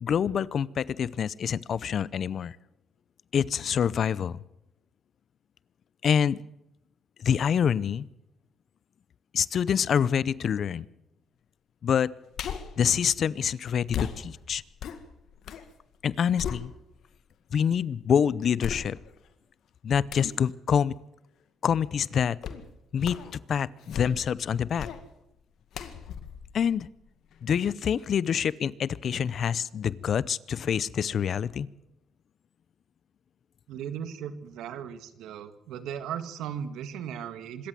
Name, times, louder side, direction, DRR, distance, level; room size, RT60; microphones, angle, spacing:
voice 1, 0.0-2.6 3.3-4.4 6.0-6.4 7.2-8.1 9.3-10.9 11.8-12.1 12.8-14.6 16.0-16.7 17.5-19.0 19.8-20.9 21.6-22.4 22.9-24.9 26.5-26.9 27.4-31.7, left 8 dB, 55° left, 21 dB, 0.7 m, -26 dB
sound 1, 12.3-12.8 13.9-15.7 16.0-17.1 17.7-17.8 18.6-19.3 20.1-20.4 22.4-22.7 23.0-23.4 23.8-24.4 24.8-25.0 25.7-27.4 27.8-27.9, left 8 dB, 75° left, 1.9 m, -37 dB
voice 2, 33.7-37.7, right 8 dB, 85° right, 11 dB, 1.7 m, -37 dB
25.5 x 14.0 x 7.6 m, 0.85 s
cardioid pair, 90°, 0 cm